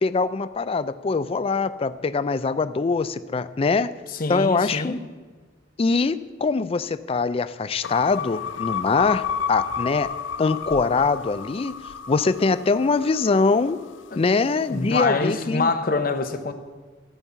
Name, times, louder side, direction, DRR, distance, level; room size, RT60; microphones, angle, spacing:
voice 1, 0.0-3.9 4.3-5.0 5.8-10.1 10.4-11.8 12.1-13.8 14.2-15.7, left 4 dB, 30° left, 0.4 m, -23 dB
voice 2, 4.1-5.0 14.1-14.2 14.7-16.5, left 3 dB, 50° left, 0.7 m, -25 dB
sound 1, 7.8-14.2, left 7 dB, 90° left, 0.5 m, -32 dB
12.5 x 5.3 x 8.1 m
head